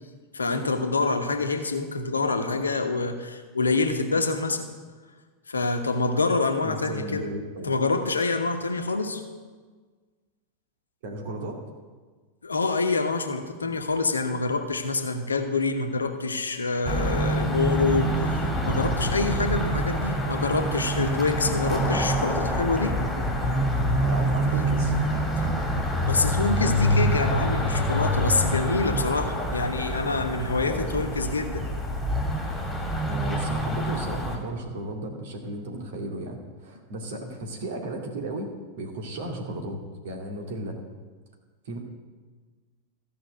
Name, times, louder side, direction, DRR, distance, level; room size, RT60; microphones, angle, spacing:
voice 1, 0.3-4.7 5.5-7.3 7.6-9.2 12.4-23.0 25.4-25.5 26.0-31.7, left 3 dB, 75° left, 7 dB, 1.1 m, -26 dB
voice 2, 6.6-7.7 11.0-11.6 21.5-22.6 24.0-24.9 29.3-29.6 30.7-31.0 33.0-38.5 38.8-40.8 41.6-41.8, right 1 dB, 55° right, 2 dB, 2.3 m, -35 dB
sound 1, 16.8-34.4, equal, 10° left, 2.7 m, -26 dB
14.5 x 6.0 x 8.0 m, 1.4 s
figure-of-eight pair, 90°, 0 cm